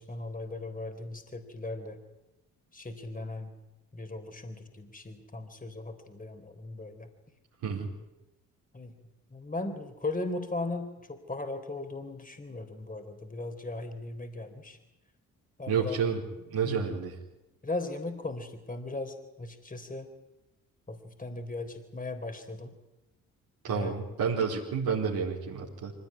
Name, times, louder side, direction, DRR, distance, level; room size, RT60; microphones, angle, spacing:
voice 1, 0.0-2.0 2.7-3.5 3.9-7.1 8.7-9.0 9.3-14.8 15.6-16.0 16.6-17.0 17.6-20.1 20.9-22.7 23.7-23.9, left 2 dB, 20° left, 7 dB, 3.9 m, -38 dB
voice 2, 15.7-17.1 23.6-25.9, right 6 dB, 65° right, -4 dB, 4.5 m, -30 dB
24.5 x 17.0 x 9.8 m, 0.97 s
hypercardioid pair, 45°, 39 cm